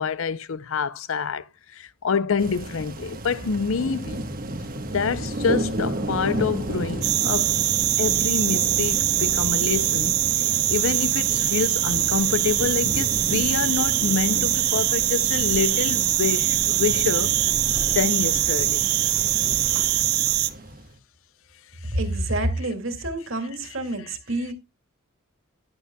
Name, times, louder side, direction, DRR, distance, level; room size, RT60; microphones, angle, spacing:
voice 1, 0.0-4.3 4.9-7.6 8.0-10.2 10.7-17.3 17.9-18.9 21.8-22.0 24.1-24.2, left 5 dB, 65° left, 0.5 m, -27 dB
sound 1, 2.4-21.0, right 1 dB, 40° right, 1.3 m, -32 dB
sound 2, 7.0-20.5, right 14 dB, 85° right, 0.8 m, -23 dB
voice 2, 21.9-24.5, right 1 dB, 65° right, 2.3 m, -27 dB
11.5 x 11.0 x 2.3 m
head